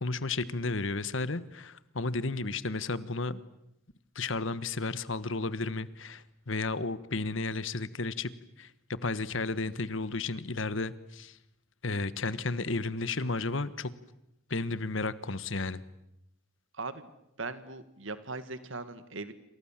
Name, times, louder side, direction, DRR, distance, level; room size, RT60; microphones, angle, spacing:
voice 1, 0.0-3.4 4.1-8.3 8.6-8.7 9.0-11.4 11.8-13.9 14.5-15.8, left 3 dB, 65° left, 16 dB, 1.3 m, -33 dB
voice 2, 16.7-17.1 17.4-19.3, right 3 dB, 65° right, 12 dB, 1.9 m, -39 dB
28.0 x 27.5 x 7.5 m, 0.82 s
head